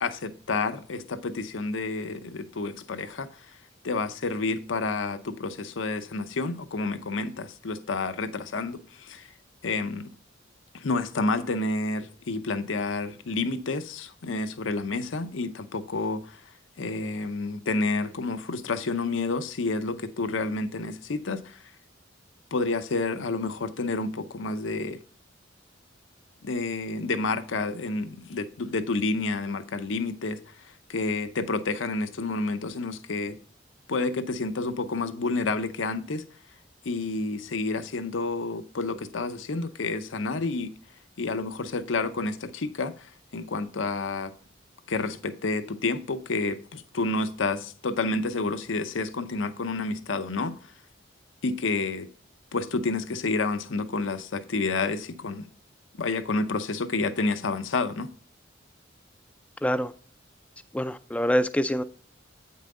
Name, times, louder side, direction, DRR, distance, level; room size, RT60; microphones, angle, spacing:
voice 1, 0.0-3.5 3.8-9.3 9.6-10.1 10.7-16.4 16.8-21.6 22.5-25.0 26.4-33.4 33.9-36.2 36.8-40.8 41.2-44.3 44.9-50.6 51.4-52.1 52.5-55.5 56.0-58.1, left 3 dB, 80° left, 0.7 m, -29 dB
voice 2, 59.6-59.9 60.7-61.8, equal, 5° left, 0.4 m, -25 dB
8.4 x 5.7 x 3.7 m
head